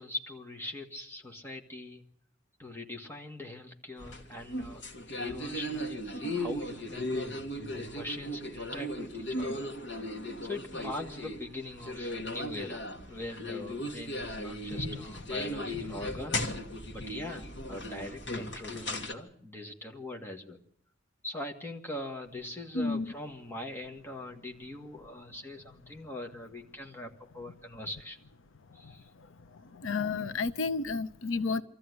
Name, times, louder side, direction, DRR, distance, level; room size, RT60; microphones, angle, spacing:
voice 1, 0.0-2.0 2.6-4.8 5.1-7.1 7.7-10.0 10.4-16.4 16.9-20.6 21.2-28.2 28.7-29.1, left 2 dB, 10° left, 1.9 m, -42 dB
sound 1, 4.0-19.1, left 1 dB, 65° left, 2.0 m, -37 dB
voice 2, 22.7-23.1 28.8-28.9 29.7-31.6, left 4 dB, 90° left, 0.8 m, -31 dB
24.0 x 14.0 x 9.7 m
head